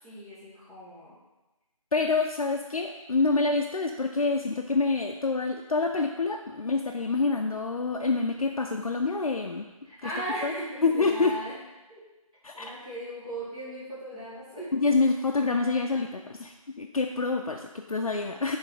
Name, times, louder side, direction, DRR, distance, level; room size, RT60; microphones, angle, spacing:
voice 1, 0.0-1.1 9.8-11.5 11.9-12.0 12.5-14.7, right 1 dB, 10° right, -14 dB, 1.0 m, -37 dB
voice 2, 1.9-9.7 10.0-10.1 10.4-10.5 10.8-11.4 12.4-12.7 14.7-18.6, left 3 dB, 75° left, 2 dB, 0.5 m, -27 dB
7.1 x 3.3 x 4.0 m, 1.1 s
figure-of-eight pair, 180°, 18 cm